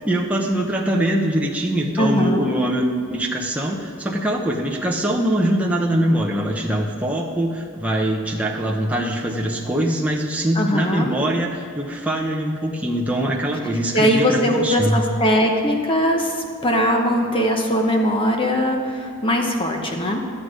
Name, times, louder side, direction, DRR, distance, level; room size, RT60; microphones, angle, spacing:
voice 1, 0.0-15.0, right 1 dB, 5° right, -1 dB, 0.7 m, -23 dB
voice 2, 2.0-2.5 10.6-11.1 13.9-16.3 16.6-20.2, equal, 25° left, 2 dB, 0.9 m, -20 dB
12.0 x 7.9 x 4.9 m, 2.5 s
head